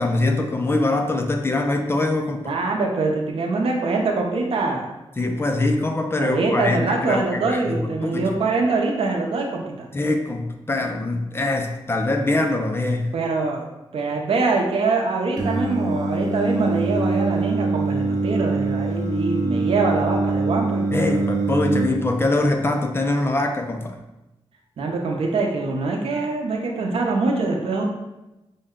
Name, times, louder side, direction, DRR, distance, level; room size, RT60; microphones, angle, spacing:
voice 1, 0.0-2.5 5.2-8.4 9.9-13.1 20.9-24.0, left 2 dB, 25° left, 4 dB, 0.4 m, -23 dB
voice 2, 2.4-4.9 6.2-9.9 13.1-13.7 13.9-20.8 24.8-27.8, right 3 dB, 85° right, 1 dB, 0.7 m, -24 dB
Singing, 15.4-21.9, right 3 dB, 40° right, 0.6 m, -23 dB
5.3 x 2.2 x 3.6 m, 0.97 s
wide cardioid pair, 115°, 10 cm